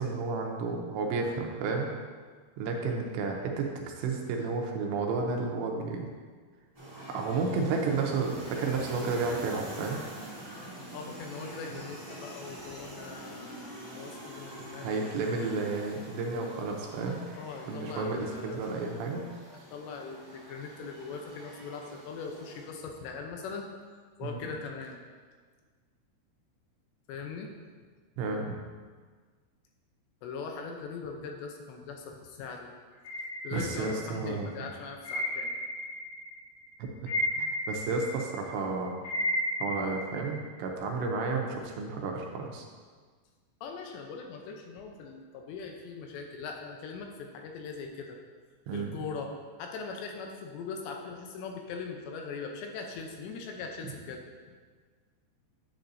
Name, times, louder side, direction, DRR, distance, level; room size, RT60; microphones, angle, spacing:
voice 1, 0.0-1.9 2.6-6.1 7.1-10.0 14.8-17.2 17.7-19.2 24.2-24.4 28.2-28.4 33.5-34.5 36.8-36.9 37.4-39.0 39.6-42.6 48.7-48.9, right 4 dB, 80° right, 1 dB, 2.9 m, -32 dB
sound 1, 6.7-22.6, equal, 20° right, 0.9 m, -45 dB
voice 2, 10.9-15.8 17.4-18.7 19.7-23.7 24.2-25.0 27.1-27.5 30.2-32.7 33.4-35.5 43.6-48.2 48.7-49.3 49.6-54.2, left 5 dB, 80° left, 2 dB, 2.8 m, -41 dB
sound 2, 33.0-34.3 35.0-36.4 36.6-40.4, left 1 dB, 60° left, 4.5 m, -33 dB
10.5 x 7.7 x 2.7 m, 1.5 s
omnidirectional pair, 5.3 m